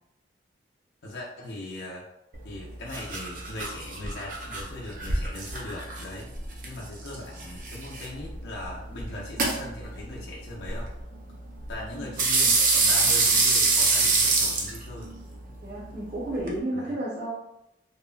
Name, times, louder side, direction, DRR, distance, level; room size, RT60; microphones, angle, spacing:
voice 1, 1.0-2.1 2.4-6.3 6.6-10.9 11.7-15.1 16.7-16.9, left 1 dB, 65° left, -4 dB, 0.5 m, -39 dB
sound 1, 2.3-16.6, right 3 dB, 50° right, 0.5 m, -27 dB
voice 2, 15.6-17.3, right 1 dB, 65° right, -7 dB, 0.9 m, -32 dB
2.9 x 2.2 x 2.4 m, 0.85 s
head